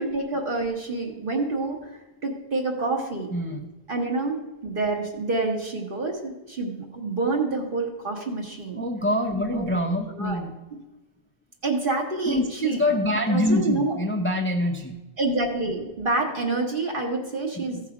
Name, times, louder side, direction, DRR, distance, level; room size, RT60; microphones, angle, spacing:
voice 1, 0.0-3.3 3.9-8.8 9.5-9.8 10.1-10.4 11.6-12.8 13.3-13.9 15.2-17.8, right 3 dB, 50° right, -1 dB, 1.6 m, -27 dB
voice 2, 3.3-3.7 8.7-10.5 12.3-15.0 17.6-17.8, left 1 dB, 15° left, 2 dB, 0.6 m, -25 dB
15.0 x 5.6 x 5.0 m, 1.1 s
omnidirectional pair, 1.1 m